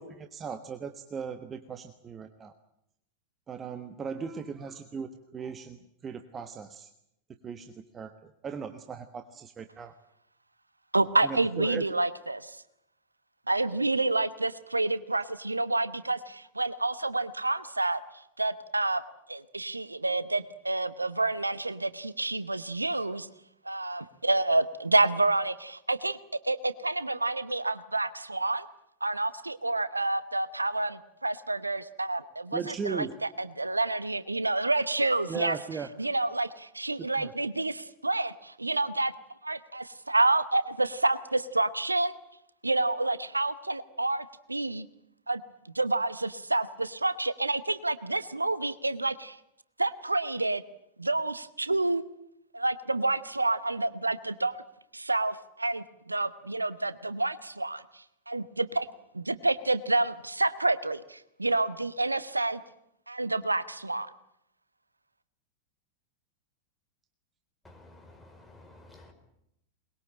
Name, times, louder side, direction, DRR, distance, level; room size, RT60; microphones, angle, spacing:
voice 1, 0.0-2.5 3.5-5.8 6.0-6.9 7.4-9.9 11.2-11.8 32.5-33.1 35.3-35.9 37.2-37.3, right 6 dB, 20° right, 9 dB, 1.3 m, -38 dB
voice 2, 10.9-12.6 13.5-18.0 18.4-19.0 19.3-23.3 23.6-26.2 26.4-28.7 29.0-33.1 33.4-35.6 36.0-39.1 39.4-42.1 42.6-44.9 45.3-45.4 45.7-49.4 49.8-50.6 51.0-52.0 52.5-54.6 54.9-58.9 59.1-62.6 63.1-64.1, right 2 dB, 85° right, 16 dB, 0.8 m, -28 dB
voice 3, 67.6-69.1, left 2 dB, 10° left, 3 dB, 5.3 m, -53 dB
22.5 x 21.0 x 8.9 m, 0.79 s
figure-of-eight pair, 90°, 0 cm